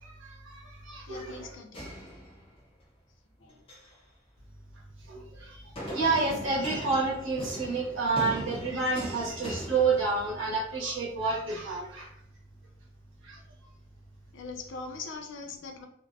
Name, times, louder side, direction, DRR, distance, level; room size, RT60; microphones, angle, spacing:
voice 1, 0.0-1.5 5.1-12.1 13.2-13.4, right 4 dB, 70° right, -3 dB, 0.9 m, -30 dB
voice 2, 1.1-1.8 3.4-3.6 14.3-15.9, left 4 dB, 65° left, 4 dB, 0.4 m, -41 dB
sound 1, 1.7-2.8 3.5-4.0 5.8-10.6, equal, 30° left, 0.7 m, -40 dB
2.5 x 2.1 x 2.6 m, 0.75 s
head